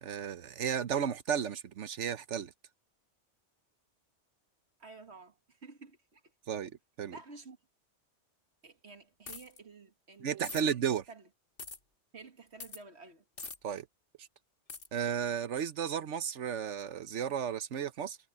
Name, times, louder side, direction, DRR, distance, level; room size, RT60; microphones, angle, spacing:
voice 1, 0.0-2.5 6.5-6.7 7.0-7.2 10.2-11.0 13.6-13.9 14.2-14.3 14.9-18.2, right 8 dB, 85° right, 1.2 m, -33 dB
voice 2, 4.8-6.2 7.1-7.6 8.6-10.7 11.1-11.3 12.1-13.2, right 4 dB, 65° right, 2.0 m, -52 dB
sound 1, 9.3-9.6 10.4-10.6 11.6-11.8 12.6-12.8 13.4-13.6 14.7-14.9, left 4 dB, 50° left, 1.7 m, -43 dB
omnidirectional pair, 1.2 m